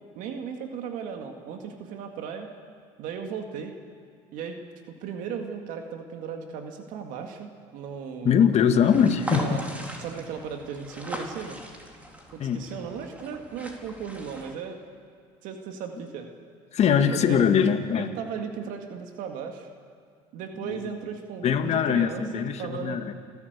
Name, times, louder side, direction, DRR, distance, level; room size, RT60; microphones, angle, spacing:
voice 1, 0.2-2.5 3.0-3.7 4.3-4.6 4.9-8.6 9.3-9.6 10.0-11.6 12.3-14.8 15.4-16.3 16.9-17.4 18.0-19.7 20.3-23.0, right 7 dB, 70° right, 4 dB, 2.0 m, -36 dB
voice 2, 8.2-9.5 12.4-12.6 16.7-18.1 20.8-20.9 21.4-23.1, left 7 dB, 50° left, 7 dB, 1.8 m, -22 dB
sound 1, 8.8-14.5, equal, 10° right, 3.8 m, -39 dB
29.0 x 11.5 x 8.1 m, 2.2 s
supercardioid pair, 80°, 14 cm